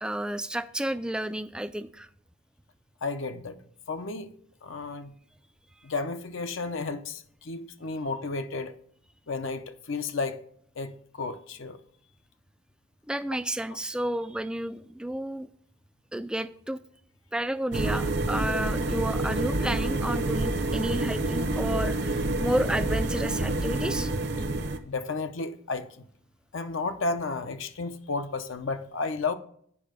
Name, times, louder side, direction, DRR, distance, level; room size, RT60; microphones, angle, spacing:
voice 1, 0.0-2.1 13.1-15.5 16.1-16.8 17.3-24.1, right 1 dB, 5° right, 0.3 m, -31 dB
voice 2, 3.0-3.6 3.9-4.3 4.6-5.1 5.8-8.7 9.3-10.4 10.8-11.8 24.8-26.0 26.5-29.3, left 3 dB, 65° left, 0.7 m, -32 dB
sound 1, 17.7-24.8, right 2 dB, 55° right, 0.8 m, -28 dB
8.6 x 5.5 x 5.0 m
head